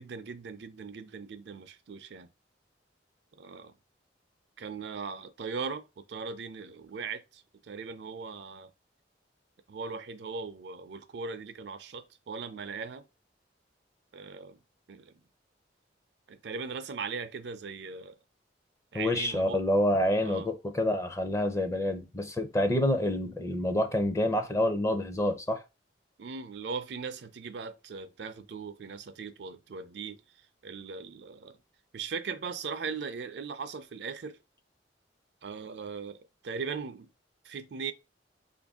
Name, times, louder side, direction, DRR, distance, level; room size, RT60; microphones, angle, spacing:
voice 1, 0.0-2.3 3.4-3.7 4.6-5.8 6.1-8.7 9.7-13.0 14.1-14.6 14.9-15.2 16.3-18.2 18.9-19.6 20.2-20.5 26.2-30.2 30.6-31.6 31.9-34.4 35.4-37.1 37.4-37.9, right 5 dB, 70° right, 0.4 m, -39 dB
voice 2, 18.9-25.6, left 1 dB, 15° left, 0.5 m, -27 dB
4.3 x 2.6 x 3.5 m
head